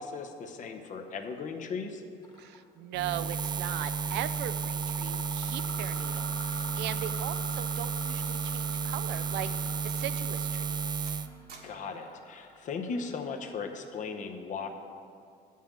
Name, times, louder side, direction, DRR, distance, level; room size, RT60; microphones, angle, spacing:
voice 1, 0.0-2.0 11.6-14.7, left 5 dB, 50° left, 4 dB, 0.8 m, -37 dB
Mechanisms, 2.2-2.6 2.9-13.5, left 1 dB, 25° left, 1.3 m, -47 dB
voice 2, 2.4-11.1, right 12 dB, 85° right, 13 dB, 0.5 m, -39 dB
Buzz, 2.9-11.3, right 6 dB, 25° right, 0.4 m, -32 dB
sound 1, 8.8-8.9 9.2-9.3 10.0-10.1 10.5-10.8 11.1-12.1 13.1-13.4, right 4 dB, 65° right, 1.5 m, -56 dB
8.6 x 5.6 x 7.3 m, 2.4 s
cardioid pair, 110°, 17 cm